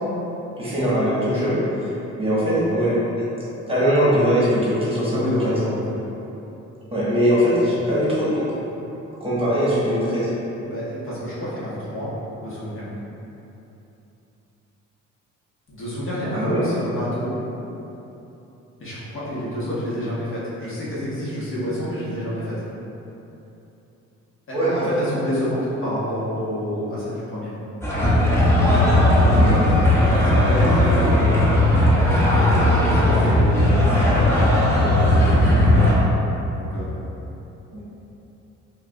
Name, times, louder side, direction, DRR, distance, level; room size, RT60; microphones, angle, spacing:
voice 1, 0.6-1.5 2.2-3.0 3.7-5.5 6.9-8.5 9.2-10.3 16.3-16.6 24.5-24.7 29.3-29.6, equal, 20° right, -10 dB, 1.1 m, -21 dB
voice 2, 1.2-1.6 5.1-5.8 10.6-12.1 12.4-12.8 15.7-17.3 18.8-22.5 24.5-27.5 29.9-31.4 32.0-36.0 36.5-37.0, equal, 45° left, -9 dB, 1.1 m, -28 dB
sound 1, 27.8-35.9, left 1 dB, 10° left, 0.7 m, -17 dB
4.4 x 2.3 x 2.3 m, 3.0 s
cardioid pair, 90°, 30 cm